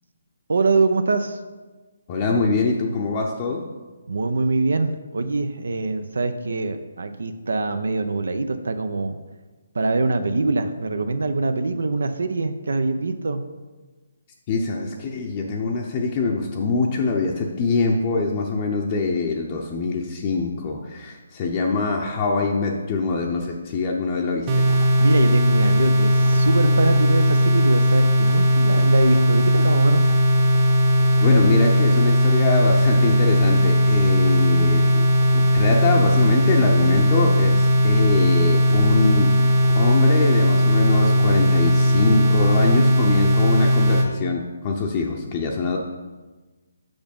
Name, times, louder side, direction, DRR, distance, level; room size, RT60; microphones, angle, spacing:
voice 1, 0.5-1.4 4.1-9.2 9.7-13.4 25.0-30.0, right 3 dB, 75° right, 9 dB, 0.6 m, -23 dB
voice 2, 2.1-3.7 14.5-24.6 31.2-45.8, left 3 dB, 30° left, 0 dB, 0.7 m, -23 dB
sound 1, 24.5-44.1, equal, 25° right, 0.9 m, -18 dB
5.9 x 5.3 x 5.3 m, 1.3 s
hypercardioid pair, 155°, 0 cm